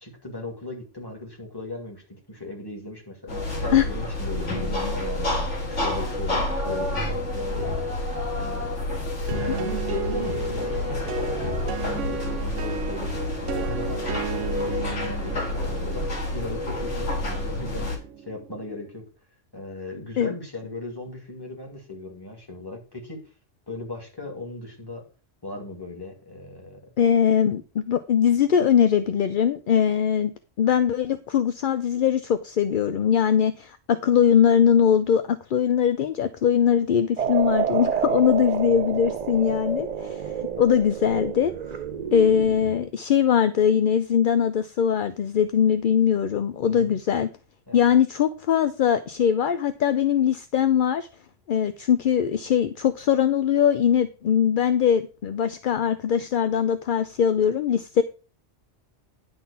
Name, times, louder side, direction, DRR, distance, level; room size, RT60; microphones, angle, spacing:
voice 1, 0.0-8.0 8.3-8.7 9.0-19.0 19.5-23.2 23.7-25.0 25.4-26.9 46.7-46.9 47.7-47.9, left 2 dB, 20° left, 2.5 m, -37 dB
sound 1, 3.3-18.0, left 2 dB, 75° left, 2.8 m, -28 dB
sound 2, 9.3-18.9, right 10 dB, 80° right, 1.0 m, -35 dB
voice 2, 27.0-30.3 30.6-40.3 40.6-41.5 42.1-47.3 47.7-51.1 51.5-58.0, left 8 dB, 55° left, 0.6 m, -21 dB
sound 3, 37.2-42.9, right 7 dB, 45° right, 0.6 m, -29 dB
11.0 x 4.0 x 7.0 m
omnidirectional pair, 1.2 m